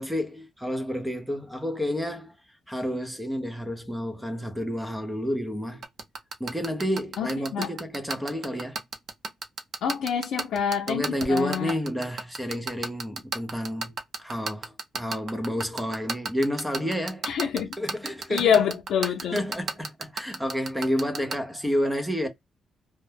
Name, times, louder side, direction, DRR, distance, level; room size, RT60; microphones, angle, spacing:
voice 1, 0.0-2.4 2.7-5.8 6.4-8.8 10.9-17.3 17.8-18.6 19.3-22.3, equal, 5° right, 0.5 m, -30 dB
sound 1, 5.8-21.3, right 4 dB, 55° right, 0.6 m, -30 dB
voice 2, 7.2-7.7 9.8-11.7 17.3-17.8 18.3-19.4, left 8 dB, 80° left, 0.5 m, -26 dB
2.1 x 2.1 x 3.2 m
cardioid pair, 130°, 0 cm